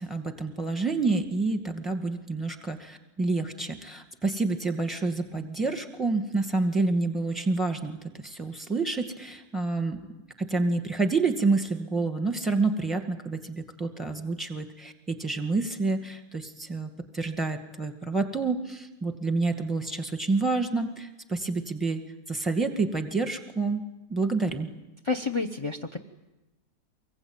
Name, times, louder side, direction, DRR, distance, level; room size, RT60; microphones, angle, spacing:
voice 1, 0.0-10.0 10.4-22.0 22.3-23.8 24.1-24.7, right 3 dB, ahead, 6 dB, 2.0 m, -28 dB
voice 2, 25.0-26.0, left 4 dB, 25° left, 6 dB, 0.7 m, -29 dB
25.0 x 21.5 x 9.1 m, 1.0 s
omnidirectional pair, 1.7 m